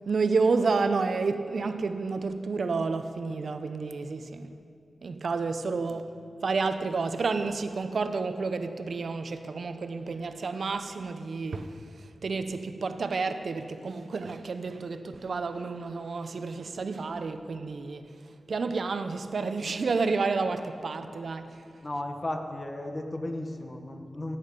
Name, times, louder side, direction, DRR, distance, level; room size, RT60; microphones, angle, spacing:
voice 1, 0.1-4.5 5.0-6.1 6.4-11.8 12.2-18.1 18.5-21.6, right 4 dB, 70° right, 0.7 m, -30 dB
voice 2, 21.8-24.4, left 1 dB, 30° left, 1.3 m, -34 dB
17.5 x 8.6 x 5.3 m
wide cardioid pair, 75°, 0 cm